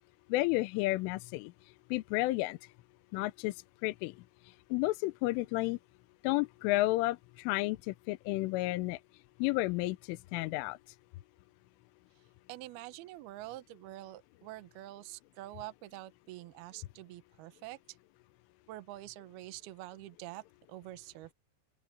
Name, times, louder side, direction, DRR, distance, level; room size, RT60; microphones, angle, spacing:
voice 1, 0.3-1.5 1.9-2.6 3.1-3.5 3.8-4.1 4.7-5.8 6.2-9.0 9.4-10.8, left 19 dB, 85° left, 3.2 m, -31 dB
voice 2, 12.5-18.0 18.7-21.3, right 16 dB, 75° right, 2.3 m, -46 dB
open air
omnidirectional pair, 5.7 m